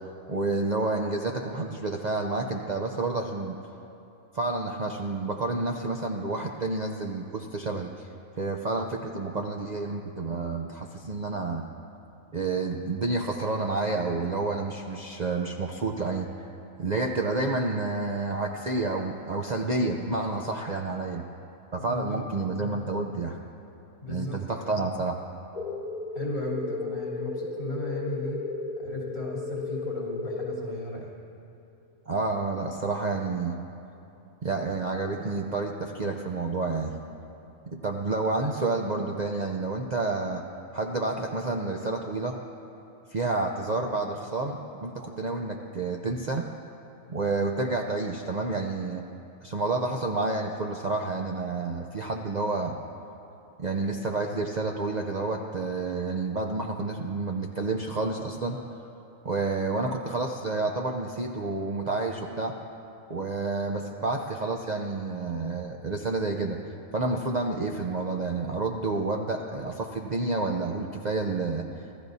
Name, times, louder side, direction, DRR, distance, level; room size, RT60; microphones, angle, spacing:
voice 1, 0.3-3.6 4.3-8.1 8.4-11.7 12.3-16.5 16.8-21.2 21.7-23.4 24.1-25.2 32.1-33.6 34.4-36.9 37.7-40.4 40.7-42.4 43.1-46.5 47.1-49.0 49.4-52.8 53.6-58.6 59.2-62.5 63.1-66.6 66.9-71.6, right 3 dB, 45° right, 2 dB, 0.6 m, -29 dB
voice 2, 21.9-22.6 24.0-24.3 26.1-28.4 28.8-31.1, left 1 dB, 55° left, -5 dB, 3.5 m, -36 dB
sound 1, 25.5-30.5, left 4 dB, 35° left, 1.0 m, -34 dB
26.0 x 14.0 x 2.7 m, 2.9 s
omnidirectional pair, 1.3 m